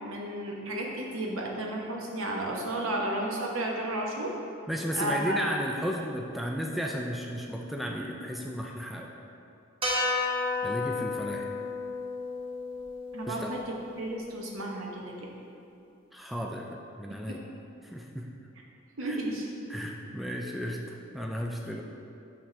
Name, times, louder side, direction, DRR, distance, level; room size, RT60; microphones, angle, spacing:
voice 1, 0.0-4.3 4.9-5.4 13.1-13.6 14.0-15.3 17.3-17.4 19.0-19.5, right 1 dB, 85° right, -1 dB, 1.0 m, -33 dB
voice 2, 4.7-9.1 10.6-11.5 13.3-13.6 16.1-17.4 17.8-18.3 19.0-19.2 19.7-21.8, equal, ahead, 0 dB, 0.3 m, -34 dB
sound 1, 9.8-14.2, left 3 dB, 25° right, 0.9 m, -32 dB
6.0 x 5.9 x 3.2 m, 2.6 s
head